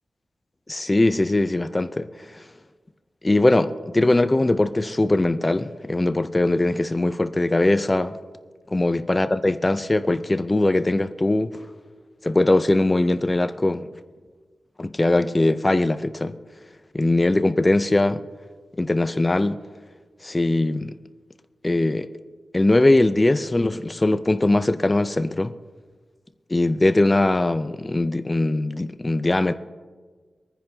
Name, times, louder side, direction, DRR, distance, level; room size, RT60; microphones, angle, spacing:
voice 1, 0.7-2.4 3.2-8.1 8.7-11.6 12.2-13.9 14.8-16.3 16.9-18.2 18.8-19.6 20.2-20.9 21.6-22.1 22.5-25.5 26.5-29.5, left 2 dB, 20° left, 0.4 m, -21 dB
25.5 x 10.0 x 2.7 m
wide cardioid pair, 130°, 0 cm